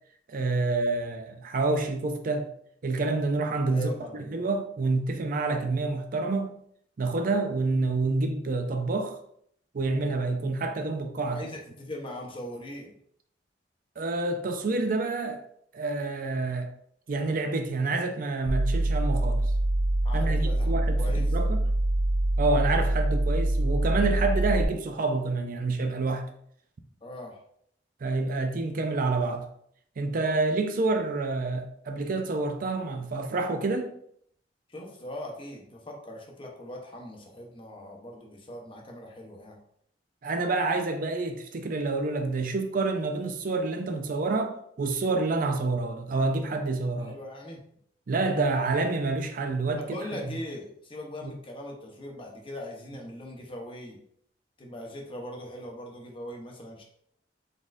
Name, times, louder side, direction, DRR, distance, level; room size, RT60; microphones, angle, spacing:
voice 1, 0.3-2.5 2.8-6.6 7.0-9.2 9.7-11.4 14.0-15.4 15.7-16.7 17.1-19.5 20.1-21.6 22.4-26.3 28.0-29.5 30.0-33.9 40.2-47.1 48.1-49.8 50.1-50.2 51.2-51.3, right 3 dB, 50° right, 0.4 m, -28 dB
voice 2, 3.7-4.2 11.2-12.9 20.0-21.3 27.0-27.4 34.7-39.6 47.0-47.6 49.8-54.0 54.6-56.8, left 1 dB, 30° left, 0.8 m, -40 dB
sound 1, 18.5-24.6, right 1 dB, 80° left, 1.0 m, -25 dB
4.0 x 3.6 x 2.5 m
head